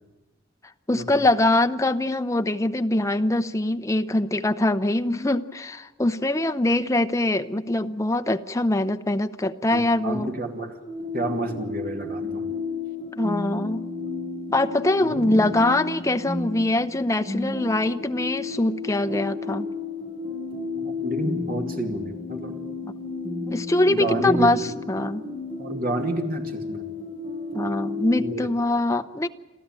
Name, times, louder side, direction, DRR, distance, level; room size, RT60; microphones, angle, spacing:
voice 1, 0.9-10.3 13.2-13.8 14.5-19.7 22.8-22.9 23.5-24.6 24.9-25.2 27.5-29.3, left 1 dB, 15° left, 9 dB, 0.7 m, -23 dB
voice 2, 9.7-10.8 11.1-12.5 15.0-15.3 20.8-22.6 23.9-24.6 25.6-26.9 28.2-28.5, right 1 dB, 50° right, 3 dB, 2.6 m, -30 dB
sound 1, 10.9-28.3, left 3 dB, 30° right, 4.2 m, -32 dB
29.0 x 13.0 x 9.0 m, 1.2 s
head